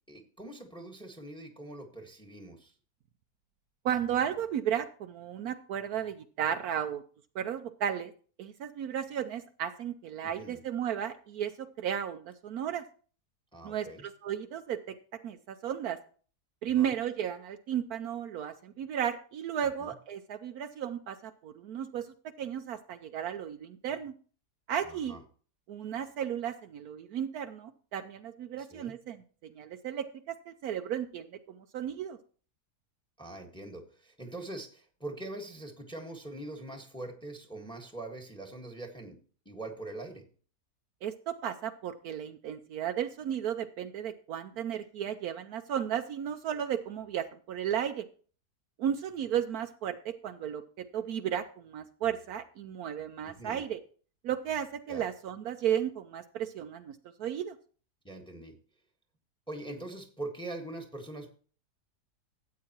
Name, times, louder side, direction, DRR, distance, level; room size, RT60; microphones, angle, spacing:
voice 1, 0.1-2.7 10.4-10.6 13.5-14.0 16.8-16.9 19.8-19.9 24.8-25.2 28.6-28.9 33.2-39.2 39.4-40.2 53.2-53.6 54.9-55.0 58.0-58.5 59.5-61.3, right 2 dB, 5° left, 4 dB, 1.4 m, -43 dB
voice 2, 3.8-7.0 7.3-8.1 8.4-11.5 11.8-12.8 13.6-14.9 15.2-16.0 16.6-24.1 24.7-25.2 25.7-29.2 29.5-32.2 41.0-48.0 48.8-50.6 50.9-53.8 54.2-57.5, right 9 dB, 70° right, 8 dB, 1.1 m, -34 dB
13.5 x 8.6 x 2.9 m, 0.41 s
omnidirectional pair, 1.7 m